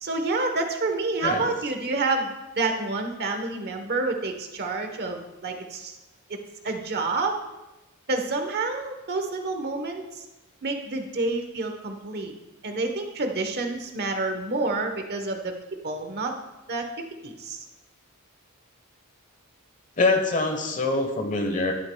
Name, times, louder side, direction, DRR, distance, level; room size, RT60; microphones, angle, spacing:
voice 1, 0.0-5.9 6.3-6.4 6.6-7.4 8.1-10.2 10.6-12.3 12.6-16.3 16.7-17.6, right 3 dB, 50° right, 5 dB, 1.1 m, -28 dB
voice 2, 20.0-21.7, left 3 dB, 35° left, 5 dB, 1.1 m, -24 dB
12.0 x 10.0 x 2.3 m, 0.99 s
head